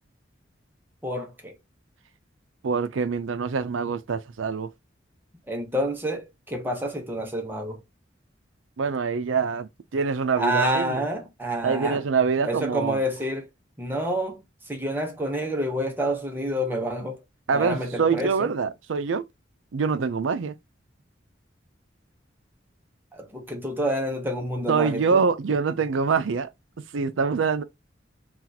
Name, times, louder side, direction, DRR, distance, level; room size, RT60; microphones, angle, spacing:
voice 1, 1.0-1.5 5.5-7.8 10.3-12.0 12.4-13.5 13.8-17.2 17.5-18.5 23.1-25.2, equal, 10° right, 0.8 m, -28 dB
voice 2, 2.6-4.7 8.8-11.0 11.6-13.0 17.5-19.2 19.7-20.5 24.7-26.5 26.9-27.6, right 5 dB, 85° right, 0.5 m, -25 dB
2.8 x 2.4 x 4.0 m
head